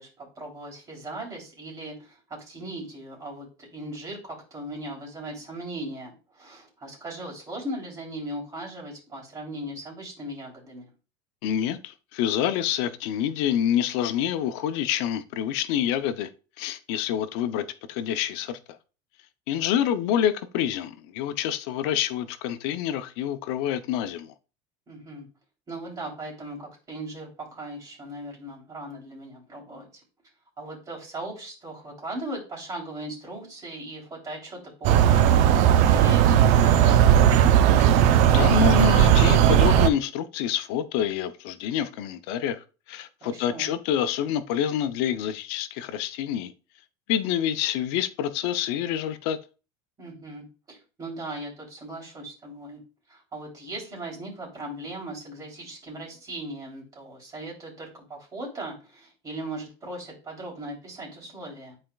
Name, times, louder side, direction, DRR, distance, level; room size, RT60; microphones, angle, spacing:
voice 1, 0.0-10.9 24.9-25.3 25.7-30.0 30.6-37.2 43.2-43.7 50.0-52.8 53.1-61.8, right 1 dB, 25° right, 3.3 m, -38 dB
voice 2, 11.4-16.3 16.6-18.6 19.5-24.3 38.3-42.6 42.9-46.5 47.1-49.4, left 10 dB, 75° left, 0.7 m, -27 dB
sound 1, 34.8-39.9, right 10 dB, 60° right, 0.6 m, -17 dB
10.0 x 4.3 x 2.4 m
cardioid pair, 140°, 13 cm